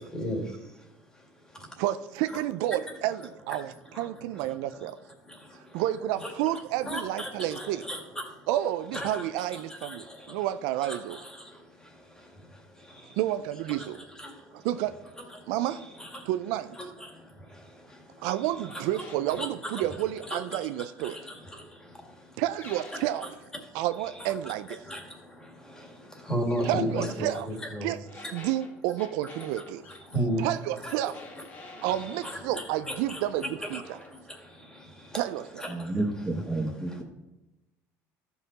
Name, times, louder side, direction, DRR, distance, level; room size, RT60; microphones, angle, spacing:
voice 1, 0.1-0.4 6.2-6.3 6.9-8.0 8.9-9.1 9.8-9.9 10.8-11.0 19.4-19.5 20.3-20.4 24.9-25.0 26.3-27.9 30.1-30.4 30.8-30.9 32.2-32.4 32.9-33.8 35.6-35.7, equal, 10° left, 1 dB, 2.1 m, -31 dB
voice 2, 1.8-5.0 5.7-7.8 8.5-11.2 13.2-14.0 14.5-15.0 15.5-15.9 16.2-16.8 18.2-21.2 22.4-23.3 23.7-24.8 26.6-27.5 27.8-29.9 30.4-31.2 31.8-34.0 35.1-35.6, right 13 dB, 85° right, 12 dB, 0.4 m, -30 dB
sound 1, 18.7-19.5 22.6-23.4 26.5-27.4 28.1-30.0 31.1-32.4 32.9-33.5 33.8-34.1, left 2 dB, 30° left, 2.2 m, -48 dB
voice 3, 35.7-37.0, right 2 dB, 10° right, 1 dB, 1.5 m, -30 dB
13.5 x 5.6 x 4.1 m, 1.0 s
cardioid pair, 125°, 6 cm